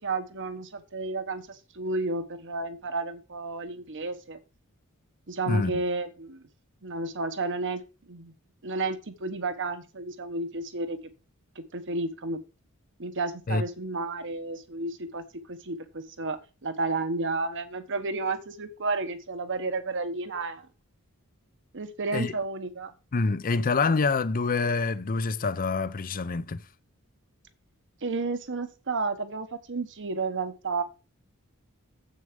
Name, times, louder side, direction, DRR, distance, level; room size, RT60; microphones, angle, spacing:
voice 1, 0.0-4.4 5.3-6.4 6.8-7.8 8.1-8.3 8.6-11.0 11.5-12.4 13.0-20.7 21.7-22.9 28.0-30.8, right 3 dB, 55° right, 1.2 m, -32 dB
voice 2, 23.1-26.6, left 4 dB, 40° left, 0.5 m, -26 dB
7.8 x 6.5 x 5.1 m
head